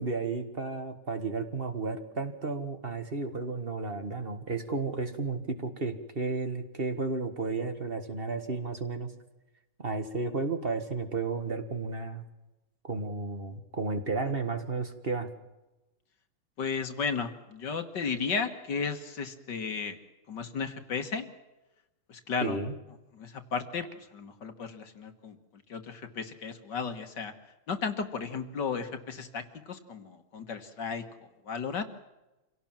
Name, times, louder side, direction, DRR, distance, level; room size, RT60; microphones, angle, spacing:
voice 1, 0.0-9.1 9.8-12.2 12.8-15.3 22.4-22.8, right 3 dB, 30° right, 8 dB, 1.7 m, -33 dB
voice 2, 16.6-20.0 20.3-21.3 22.1-22.6 23.1-23.9 24.1-25.4 25.7-27.3 27.7-31.0 31.5-31.8, left 5 dB, 55° left, 7 dB, 2.0 m, -34 dB
26.5 x 17.5 x 7.5 m, 1.0 s
omnidirectional pair, 2.4 m